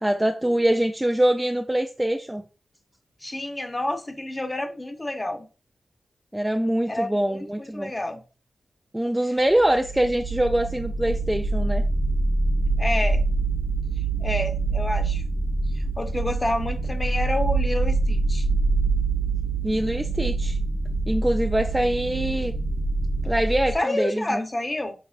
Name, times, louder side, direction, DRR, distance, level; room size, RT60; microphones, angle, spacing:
voice 1, 0.0-2.4 6.3-7.9 8.9-11.8 19.6-20.6 21.1-22.5 23.2-24.4, right 1 dB, 10° right, 0.4 m, -24 dB
voice 2, 3.2-5.5 6.9-8.2 12.8-13.2 14.2-15.2 15.7-18.5 23.7-24.9, left 1 dB, 20° left, 0.8 m, -29 dB
sound 1, 9.4-23.7, right 3 dB, 90° right, 0.9 m, -25 dB
5.8 x 3.1 x 2.4 m
wide cardioid pair, 105°, 0 cm